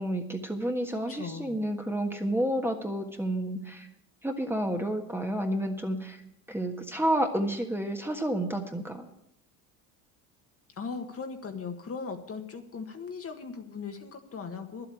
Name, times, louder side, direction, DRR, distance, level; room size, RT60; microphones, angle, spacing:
voice 1, 0.0-3.9 4.2-6.2 6.5-9.1, right 1 dB, 5° right, 3 dB, 1.5 m, -30 dB
voice 2, 1.1-1.6 10.8-14.9, left 5 dB, 35° left, 5 dB, 1.6 m, -38 dB
11.0 x 8.1 x 8.4 m, 0.81 s
supercardioid pair, 85°, 42 cm